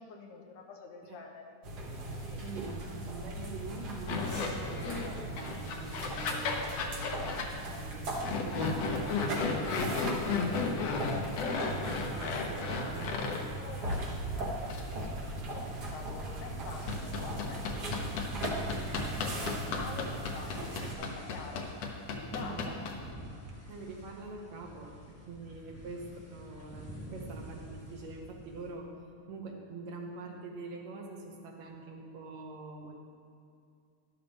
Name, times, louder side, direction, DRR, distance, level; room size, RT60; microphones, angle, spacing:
voice 1, 0.0-1.6 2.2-2.5 12.2-13.3 13.6-21.7 22.1-22.8, left 4 dB, 85° left, 2 dB, 2.6 m, -47 dB
sound 1, 1.6-20.9, right 1 dB, 50° right, 1.2 m, -38 dB
voice 2, 2.4-13.6 22.3-22.7 23.7-28.9 29.3-33.0, right 3 dB, 65° right, 1 dB, 2.1 m, -45 dB
sound 2, 4.1-5.1 5.4-7.5 8.2-13.5 13.8-14.0 14.7-14.8 16.9-23.1, left 4 dB, 65° left, 1.7 m, -34 dB
sound 3, 15.3-28.7, equal, 10° left, 0.8 m, -48 dB
12.0 x 11.5 x 3.5 m, 2.5 s
omnidirectional pair, 3.6 m